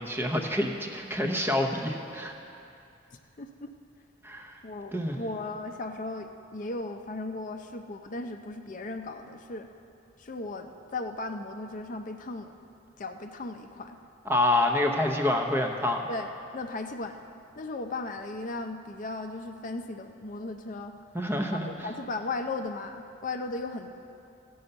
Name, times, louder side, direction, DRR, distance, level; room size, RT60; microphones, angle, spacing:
voice 1, 0.0-2.4 4.2-4.6 4.9-5.2 14.3-16.0 21.1-21.7, left 1 dB, 10° right, 2 dB, 0.8 m, -27 dB
voice 2, 3.4-3.7 4.3-9.7 10.2-12.5 13.0-14.0 16.1-17.2 17.6-20.9 21.5-23.9, left 2 dB, 45° left, 5 dB, 0.5 m, -36 dB
15.5 x 5.5 x 7.9 m, 2.6 s
head